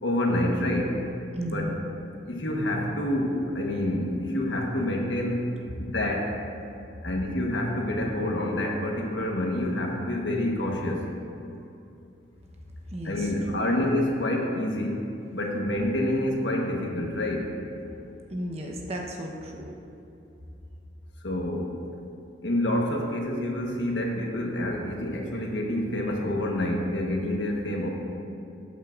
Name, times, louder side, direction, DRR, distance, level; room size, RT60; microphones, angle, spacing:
voice 1, 0.0-1.0 1.4-1.7 2.3-5.5 5.8-6.3 7.0-11.0 13.0-15.1 15.3-17.5 21.2-21.7 22.4-27.9, left 1 dB, 80° left, 0 dB, 1.3 m, -27 dB
voice 2, 1.3-1.7 12.9-13.3 13.6-13.7 18.3-19.7, equal, 35° right, 0 dB, 0.9 m, -34 dB
13.5 x 8.2 x 2.5 m, 2.7 s
head